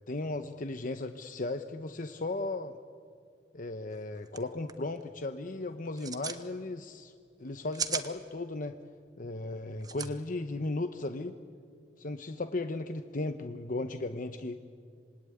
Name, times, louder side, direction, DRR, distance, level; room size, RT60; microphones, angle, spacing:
voice 1, 0.1-2.8 3.5-7.1 7.4-8.8 9.2-11.4 12.0-14.7, left 2 dB, 50° left, 8 dB, 0.9 m, -36 dB
sound 1, 3.9-4.0 4.3-4.4 4.7-5.0 5.9-6.4 7.5-8.1 9.8-10.1, right 6 dB, 25° right, 1.2 m, -35 dB
26.5 x 20.5 x 9.8 m, 2.3 s
head